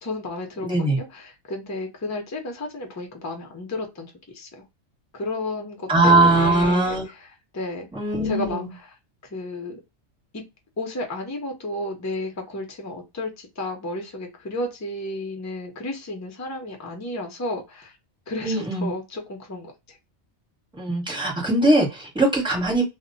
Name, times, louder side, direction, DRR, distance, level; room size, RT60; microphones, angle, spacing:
voice 1, 0.0-4.6 5.1-7.9 8.2-9.0 9.2-9.8 10.3-10.4 10.8-17.9 18.3-20.0, left 2 dB, 25° left, 2 dB, 0.3 m, -32 dB
voice 2, 0.6-1.0 5.9-7.0 7.9-8.7 18.4-18.9 20.8-22.8, right 2 dB, 5° right, -1 dB, 0.8 m, -20 dB
2.1 x 2.1 x 3.8 m, 0.24 s
omnidirectional pair, 1.3 m